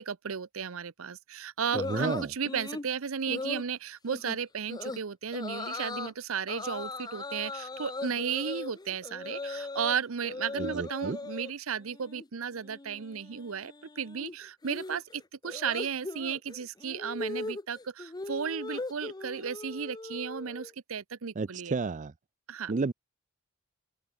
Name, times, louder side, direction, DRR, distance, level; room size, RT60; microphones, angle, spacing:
voice 1, 0.0-21.7 22.5-22.7, right 7 dB, 80° right, 0.7 m, -34 dB
sound 1, 1.7-2.9 3.3-3.7 4.1-4.4 4.7-5.0 5.3-6.1 6.5-10.0 10.2-11.5 11.8-12.3 12.5-20.7, left 3 dB, 20° left, 0.6 m, -39 dB
voice 2, 1.7-2.3 10.6-11.2 21.4-22.1 22.7-22.9, right 4 dB, 35° right, 0.5 m, -31 dB
open air
head